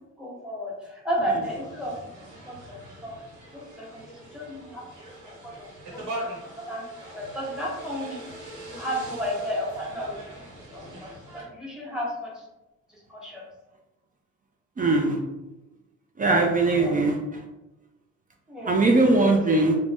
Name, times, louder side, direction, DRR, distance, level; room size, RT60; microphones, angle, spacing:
voice 1, 0.2-2.1 2.4-3.2 3.5-4.8 5.4-6.3 6.6-12.4 12.9-13.4 16.7-17.0 18.5-18.8, equal, ahead, -4 dB, 1.1 m, -33 dB
sound 1, 1.4-11.4, right 1 dB, 80° right, 1.1 m, -42 dB
voice 2, 14.8-15.2 16.2-17.2 18.7-19.8, right 2 dB, 30° right, 2 dB, 0.4 m, -20 dB
2.4 x 2.2 x 3.4 m, 1.0 s
cardioid pair, 90°, 30 cm